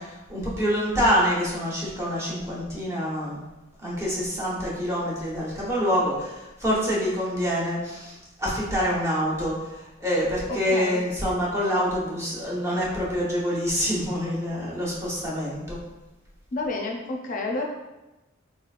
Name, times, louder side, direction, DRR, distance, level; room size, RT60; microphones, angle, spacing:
voice 1, 0.0-3.4 3.8-9.5 10.0-15.8, equal, 15° right, -7 dB, 1.0 m, -26 dB
voice 2, 10.5-11.0 16.5-17.6, left 2 dB, 40° left, 1 dB, 0.4 m, -30 dB
4.1 x 3.0 x 2.4 m, 1.0 s
head